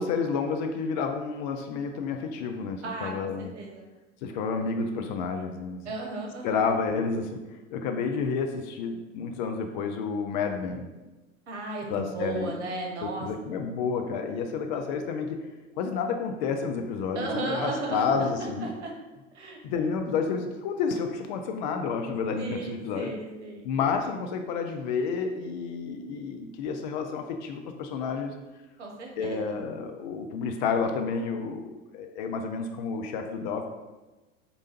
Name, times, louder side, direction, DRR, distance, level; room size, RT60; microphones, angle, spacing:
voice 1, 0.0-3.5 4.2-5.8 6.4-7.3 7.7-10.9 11.9-12.6 13.2-15.4 15.8-18.7 19.6-23.1 23.6-28.3 29.2-33.7, left 5 dB, 40° left, 5 dB, 0.4 m, -30 dB
voice 2, 2.8-3.9 5.8-6.6 11.5-13.3 17.1-18.9 19.3-19.6 22.4-23.7 28.8-29.4, right 2 dB, 65° right, 0 dB, 1.0 m, -35 dB
4.7 x 2.6 x 2.8 m, 1.1 s
figure-of-eight pair, 80°, 38 cm